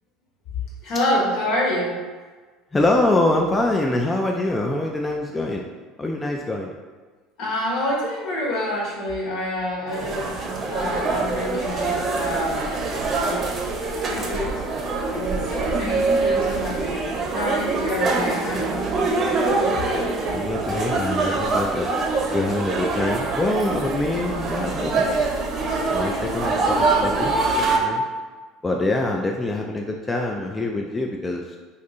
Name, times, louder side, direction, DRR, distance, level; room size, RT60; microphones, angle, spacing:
voice 1, 0.8-1.9 7.4-10.3 10.7-12.7 13.2-13.5 14.1-14.5 15.1-17.0 17.3-18.7, left 1 dB, 65° left, -4 dB, 1.0 m, -27 dB
voice 2, 2.7-5.6 6.0-6.7 20.3-21.9 22.3-25.1 25.9-28.0 28.6-31.6, left 2 dB, 20° left, 1 dB, 0.3 m, -24 dB
sound 1, 9.9-27.8, right 3 dB, 40° right, 0.7 m, -24 dB
2.6 x 2.5 x 4.0 m, 1.4 s
hypercardioid pair, 75°, 0 cm